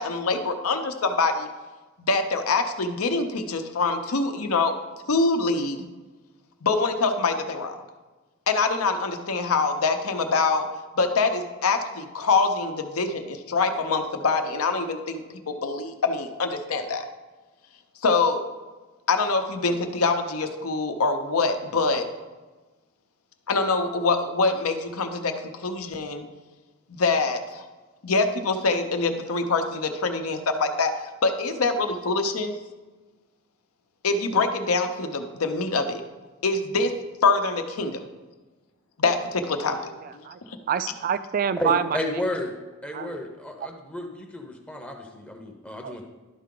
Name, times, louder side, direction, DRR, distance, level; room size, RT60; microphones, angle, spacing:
voice 1, 0.0-1.5 2.0-4.7 5.1-5.9 6.6-7.8 8.5-10.6 11.0-17.0 18.0-18.4 19.1-22.1 23.5-26.2 26.9-27.6 28.0-30.9 31.2-32.5 34.0-36.0 36.4-36.9 37.2-38.0 39.0-39.9, left 3 dB, 80° left, 6 dB, 0.8 m, -24 dB
voice 2, 39.6-40.1 40.7-42.2 42.9-43.2 45.8-46.0, right 8 dB, 40° right, 13 dB, 0.3 m, -27 dB
voice 3, 41.6-42.5 42.8-46.0, left 1 dB, 5° left, 2 dB, 0.7 m, -32 dB
11.5 x 4.6 x 3.8 m, 1.2 s
head